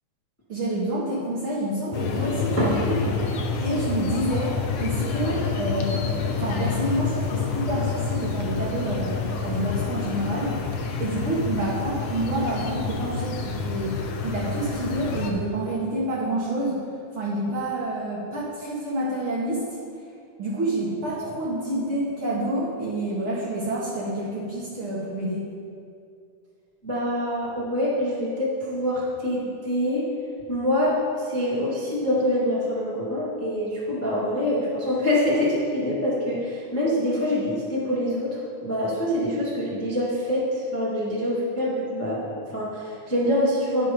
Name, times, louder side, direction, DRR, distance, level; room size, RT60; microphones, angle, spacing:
voice 1, 0.5-3.3 3.6-16.8 17.1-19.8 20.4-25.4, right 1 dB, 55° right, -6 dB, 1.7 m, -28 dB
sound 1, 1.9-15.3, left 5 dB, 70° left, 1.6 m, -28 dB
voice 2, 26.8-30.1 30.5-43.9, left 1 dB, 10° left, -8 dB, 1.0 m, -25 dB
10.0 x 5.9 x 5.1 m, 2.4 s
omnidirectional pair, 3.6 m